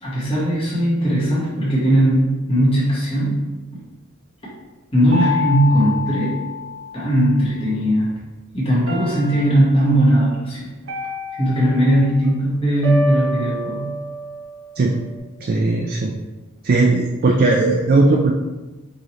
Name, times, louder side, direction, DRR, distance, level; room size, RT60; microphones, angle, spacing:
voice 1, 0.0-3.4 4.9-6.3 6.9-8.1 8.5-10.7 11.4-13.9, equal, 25° left, -8 dB, 1.2 m, -18 dB
sound 1, 5.1-7.5 8.9-9.9 10.9-12.2 12.8-15.2, left 2 dB, 80° right, 0.9 m, -28 dB
voice 2, 15.4-16.2 16.6-18.3, right 3 dB, 45° right, 0 dB, 0.3 m, -17 dB
4.7 x 2.9 x 3.0 m, 1.2 s
head